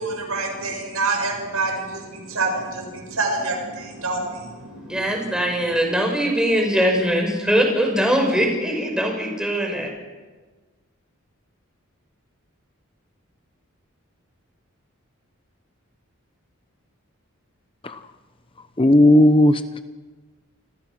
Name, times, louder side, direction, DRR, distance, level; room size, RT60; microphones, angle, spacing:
voice 1, 0.0-5.7, right 3 dB, 90° right, 2 dB, 7.6 m, -27 dB
voice 2, 4.9-9.9, equal, 5° right, 1 dB, 5.8 m, -21 dB
voice 3, 18.8-19.8, left 1 dB, 25° left, 10 dB, 0.9 m, -15 dB
29.0 x 22.0 x 6.2 m, 1.3 s
head